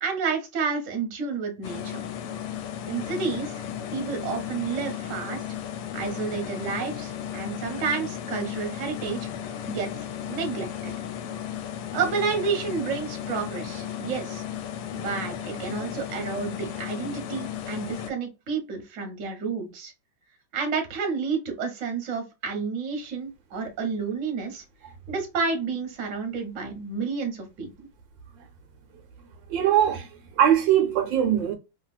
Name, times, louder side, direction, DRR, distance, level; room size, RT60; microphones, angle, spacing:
voice 1, 0.0-2.0 2.8-3.5 3.9-5.4 5.9-9.3 9.7-10.9 11.9-14.4 14.9-19.9 20.5-24.6 25.1-27.7, right 5 dB, 50° right, 1.1 m, -30 dB
sound 1, 1.6-18.1, left 9 dB, 75° left, 1.1 m, -35 dB
voice 2, 29.5-30.1 30.4-31.5, right 10 dB, 75° right, 1.4 m, -21 dB
2.9 x 2.8 x 2.3 m
omnidirectional pair, 2.1 m